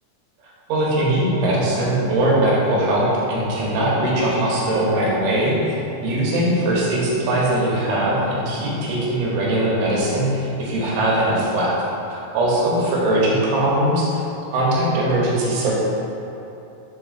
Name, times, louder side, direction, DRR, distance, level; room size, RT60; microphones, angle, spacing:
voice 1, 0.4-5.8 6.0-11.7 12.1-14.2 14.5-15.7, right 1 dB, 75° right, -5 dB, 2.3 m, -20 dB
4.5 x 4.5 x 2.4 m, 2.9 s
omnidirectional pair, 3.9 m